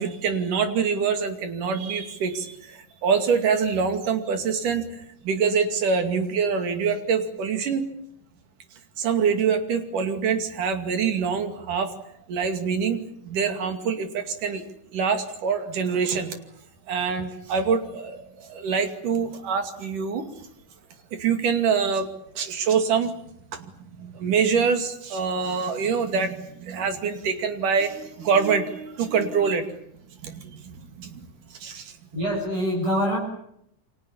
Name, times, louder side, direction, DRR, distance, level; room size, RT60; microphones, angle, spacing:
voice 1, 0.0-4.9 5.2-7.9 9.0-11.9 12.3-14.6 14.9-16.4 16.9-20.3 21.1-22.1 22.4-23.1 23.5-23.7 24.0-29.7 30.2-31.3 31.6-31.9, right 6 dB, 80° right, 7 dB, 4.0 m, -25 dB
voice 2, 32.1-33.2, equal, 40° right, -2 dB, 8.7 m, -24 dB
28.5 x 24.5 x 7.2 m, 0.73 s
omnidirectional pair, 3.6 m